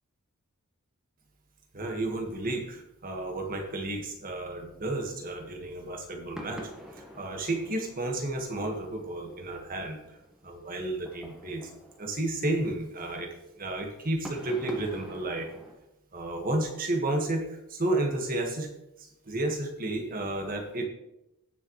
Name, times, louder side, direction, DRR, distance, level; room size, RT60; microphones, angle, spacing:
voice 1, 1.7-10.2 10.4-11.7 12.0-15.5 16.1-18.7 19.0-20.8, right 2 dB, 40° right, 2 dB, 1.8 m, -32 dB
sound 1, 6.3-15.7, equal, 5° right, 1.5 m, -48 dB
18.0 x 6.7 x 3.2 m, 0.89 s
head